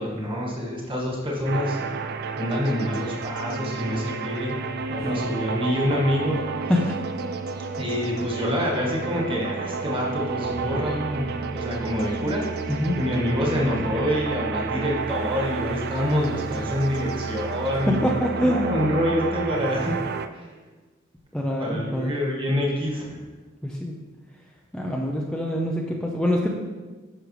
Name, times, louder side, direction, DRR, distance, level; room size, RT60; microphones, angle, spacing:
voice 1, 0.0-1.8 2.3-4.6 4.9-6.4 7.8-18.0 18.4-19.9 20.3-20.5 21.6-23.2, left 1 dB, 25° right, -2 dB, 1.8 m, -26 dB
sound 1, 1.4-20.3, right 4 dB, 50° right, 0.4 m, -31 dB
voice 2, 17.7-18.7 21.3-22.1 23.6-23.9 24.7-26.5, equal, 5° left, -2 dB, 0.6 m, -25 dB
10.0 x 6.4 x 3.3 m, 1.3 s
head